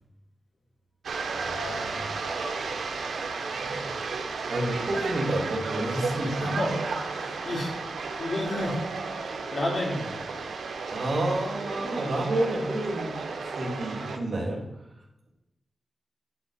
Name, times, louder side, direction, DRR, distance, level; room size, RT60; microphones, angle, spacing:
sound 1, 1.0-14.2, right 4 dB, 90° right, 0.9 m, -33 dB
voice 1, 1.4-2.1 3.6-3.9 4.5-6.4 7.2-7.4 10.9-13.1 13.6-14.6, right 1 dB, 65° right, -3 dB, 3.1 m, -30 dB
voice 2, 6.2-6.9 7.1-7.7 8.0-8.8 9.5-10.2, left 1 dB, 55° left, -3 dB, 3.3 m, -31 dB
11.0 x 4.3 x 5.6 m, 0.92 s
cardioid pair, 75°, 0 cm